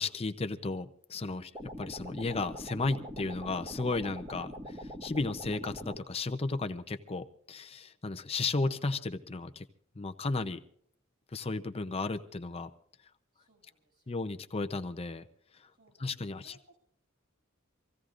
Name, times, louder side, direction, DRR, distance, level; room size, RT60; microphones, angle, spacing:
voice 1, 0.0-9.7 10.0-10.6 11.3-12.7 14.1-15.2 15.5-15.7 16.0-16.5, left 3 dB, 30° left, 8 dB, 0.6 m, -34 dB
sound 1, 1.5-6.0, equal, 20° right, 1.5 m, -43 dB
voice 2, 13.3-14.3 15.7-16.8, right 1 dB, 70° right, 0 dB, 6.8 m, -66 dB
25.5 x 16.0 x 2.5 m, 0.63 s
head